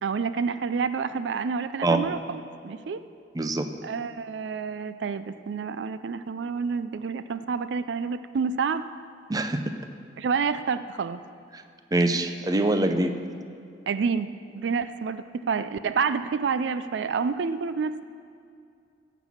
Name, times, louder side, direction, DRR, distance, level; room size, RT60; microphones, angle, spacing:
voice 1, 0.0-3.0 3.8-8.8 10.2-11.2 13.9-18.0, right 5 dB, 80° right, 12 dB, 0.4 m, -28 dB
voice 2, 3.3-3.7 9.3-9.6 11.9-13.1, right 2 dB, 20° right, 7 dB, 0.6 m, -24 dB
15.5 x 6.1 x 7.1 m, 2.4 s
head